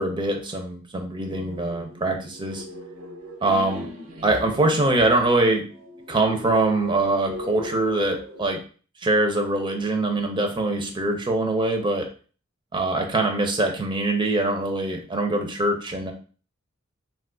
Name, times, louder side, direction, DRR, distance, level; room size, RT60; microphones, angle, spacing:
voice 1, 0.0-2.6 3.4-3.9 4.2-5.6 6.1-8.6 9.0-12.1 12.7-16.1, right 2 dB, 25° right, 3 dB, 0.4 m, -23 dB
sound 1, 1.3-8.6, equal, 75° right, 0.7 m, -40 dB
2.7 x 2.3 x 3.6 m, 0.39 s
head